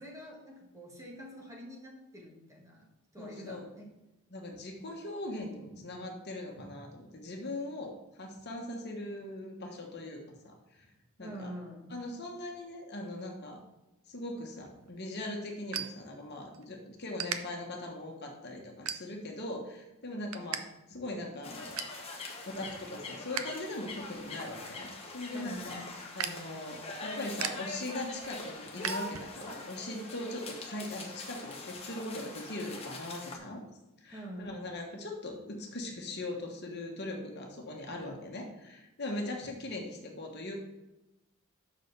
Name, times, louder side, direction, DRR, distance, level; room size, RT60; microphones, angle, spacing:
voice 1, 0.0-4.1 11.2-12.0 25.3-26.0 34.1-34.6, equal, 15° right, -2 dB, 1.5 m, -46 dB
voice 2, 3.2-3.7 4.3-10.9 11.2-11.5 11.9-13.6 14.1-20.6 20.9-21.8 22.5-25.8 26.1-33.6 34.0-40.6, left 1 dB, 50° left, 1 dB, 1.2 m, -40 dB
sound 1, 14.6-16.7 17.1-17.4 18.0-18.2 18.8-19.4 19.8-20.6 20.9-21.0 21.4-22.0 22.5-23.6 23.9-29.6, right 8 dB, 75° right, 0.6 m, -40 dB
sound 2, 21.4-33.4, left 2 dB, 30° left, 1.2 m, -43 dB
6.3 x 5.0 x 6.6 m, 0.97 s
head